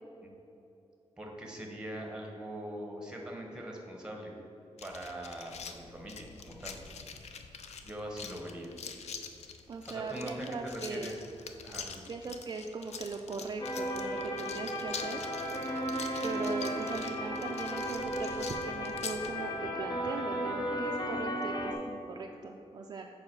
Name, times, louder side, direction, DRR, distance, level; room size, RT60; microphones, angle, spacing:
voice 1, 1.2-4.3 4.8-6.7 7.8-8.7 9.9-11.1 11.6-12.0, right 1 dB, 10° right, 0 dB, 1.1 m, -42 dB
sound 1, 4.8-19.3, left 6 dB, 80° left, 0.5 m, -45 dB
voice 2, 9.7-11.1 12.1-15.3 16.2-23.1, right 4 dB, 40° right, 2 dB, 0.4 m, -39 dB
sound 2, 13.6-21.7, equal, 40° left, 0.8 m, -35 dB
7.3 x 4.8 x 6.1 m, 2.9 s
wide cardioid pair, 175°, 11 cm